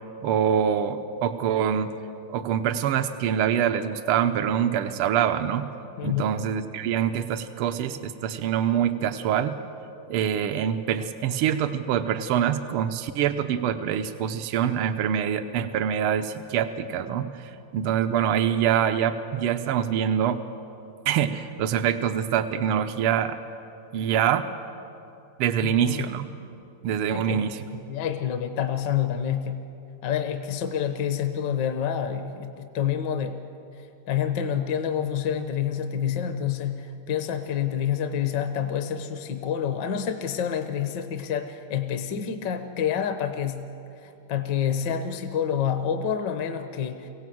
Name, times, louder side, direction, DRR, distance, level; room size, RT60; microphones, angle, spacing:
voice 1, 0.2-1.9 2.3-5.7 6.0-9.6 10.1-17.3 17.7-20.4 21.1-23.4 23.9-24.5 25.4-26.3 26.8-27.7, right 9 dB, 85° right, 9 dB, 1.7 m, -25 dB
voice 2, 6.0-6.3 25.6-26.1 27.1-27.5 27.9-29.7 30.0-33.4 34.1-43.7 44.0-47.1, left 8 dB, 60° left, 8 dB, 1.5 m, -28 dB
24.5 x 17.0 x 7.7 m, 2.7 s
omnidirectional pair, 2.4 m